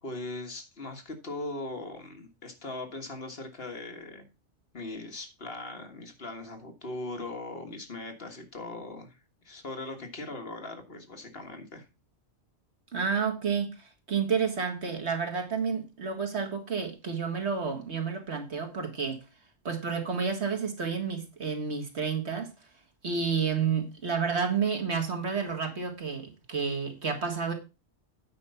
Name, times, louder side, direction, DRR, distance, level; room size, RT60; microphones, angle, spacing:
voice 1, 0.0-4.2 4.7-9.2 9.4-11.9, left 2 dB, 55° left, 1.8 m, -39 dB
voice 2, 12.9-19.2 19.6-22.5 23.0-27.5, right 6 dB, 70° right, 2.1 m, -30 dB
9.0 x 5.3 x 5.6 m
omnidirectional pair, 1.2 m